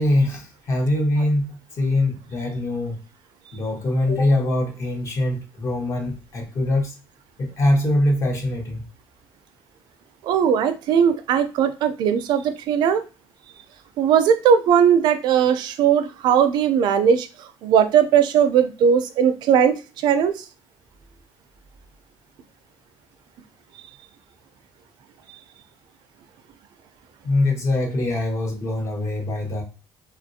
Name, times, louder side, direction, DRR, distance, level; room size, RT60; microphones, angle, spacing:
voice 1, 0.0-1.4 1.8-2.9 3.5-6.9 7.4-8.8 27.2-29.6, left 1 dB, 35° left, 1 dB, 0.9 m, -22 dB
voice 2, 10.2-13.0 14.0-17.3 17.6-20.3, right 8 dB, 60° right, 10 dB, 0.4 m, -18 dB
3.0 x 2.4 x 2.6 m, 0.32 s
cardioid pair, 160°, 9 cm